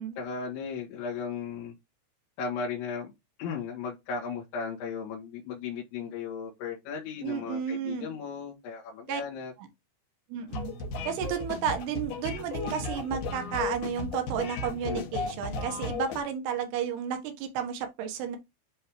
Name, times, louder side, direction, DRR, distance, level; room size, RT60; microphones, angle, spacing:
voice 1, 0.2-1.7 2.4-3.1 3.4-9.5, left 5 dB, 80° left, 4.1 m, -36 dB
voice 2, 7.2-8.1 9.1-9.2 9.6-9.7 10.3-10.7 11.0-18.4, right 8 dB, 70° right, 3.1 m, -32 dB
sound 1, 10.5-16.2, left 4 dB, 60° left, 2.2 m, -35 dB
10.5 x 3.6 x 3.0 m
omnidirectional pair, 5.1 m